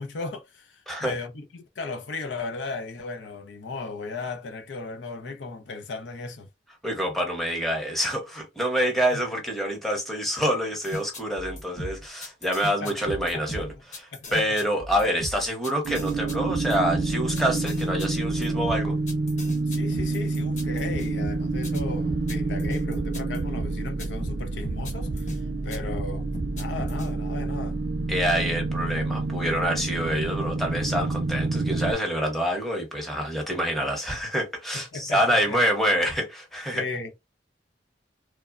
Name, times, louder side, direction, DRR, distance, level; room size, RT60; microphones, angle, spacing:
voice 1, 0.0-6.5 9.1-9.2 12.8-12.9 13.3-13.6 14.1-14.4 19.7-26.3 26.5-27.8 34.7-35.6 36.7-37.1, left 3 dB, 90° left, 0.5 m, -36 dB
voice 2, 6.8-14.1 14.3-19.0 28.1-36.8, equal, ahead, 0.8 m, -26 dB
sound 1, 10.8-25.4 25.7-27.1, right 1 dB, 45° left, 0.9 m, -36 dB
sound 2, 15.8-31.9, right 3 dB, 70° right, 0.4 m, -28 dB
3.1 x 2.1 x 2.4 m
head